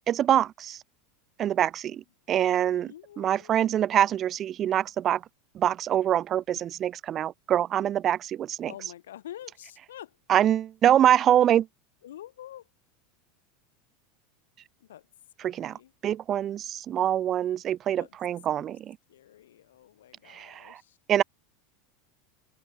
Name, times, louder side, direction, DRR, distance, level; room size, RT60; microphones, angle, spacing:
voice 1, 0.1-0.8 1.4-2.9 3.2-5.2 5.5-8.7 10.3-11.7 15.4-19.0 20.3-20.8 21.1-21.2, right 11 dB, 35° right, 0.5 m, -25 dB
voice 2, 2.7-3.6 8.7-10.2 12.0-12.7 14.8-15.1 15.5-15.9 18.0-18.2 18.5-18.7 19.1-21.0, left 12 dB, 90° left, 5.8 m, -47 dB
supercardioid pair, 110°, 0 cm